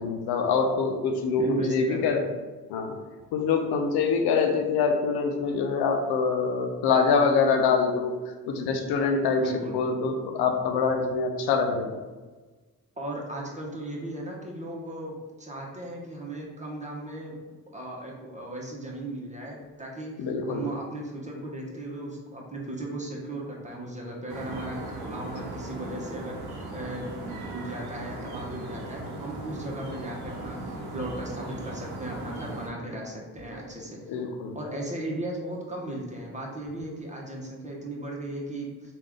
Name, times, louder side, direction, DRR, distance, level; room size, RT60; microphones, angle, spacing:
voice 1, 0.0-2.2 2.7-3.0 3.3-9.4 9.7-12.0 20.2-20.6 34.1-34.6, left 5 dB, 85° left, 4 dB, 0.5 m, -25 dB
voice 2, 1.4-2.3 9.4-9.8 13.0-34.2 34.5-39.0, right 1 dB, 20° right, -2 dB, 1.0 m, -36 dB
sound 1, 24.3-32.7, right 2 dB, 80° right, 0.8 m, -38 dB
3.2 x 2.6 x 3.5 m, 1.3 s
supercardioid pair, 55°, 37 cm